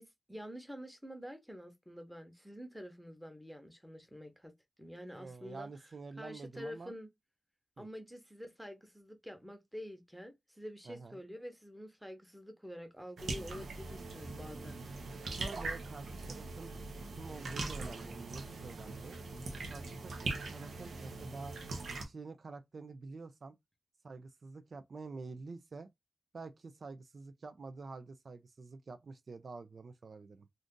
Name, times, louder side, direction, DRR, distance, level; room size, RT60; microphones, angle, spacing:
voice 1, 0.0-4.5 4.8-5.7 6.2-7.1 7.8-14.8, equal, ahead, 0.9 m, -48 dB
voice 2, 5.1-6.9 7.8-7.9 10.9-11.2 15.2-16.7 17.1-19.2 19.7-21.6 21.9-23.6 24.0-25.9 26.3-30.5, right 4 dB, 60° right, 0.3 m, -48 dB
sound 1, 13.2-22.0, right 3 dB, 90° right, 0.7 m, -41 dB
2.5 x 2.5 x 3.6 m
wide cardioid pair, 85°, 0 cm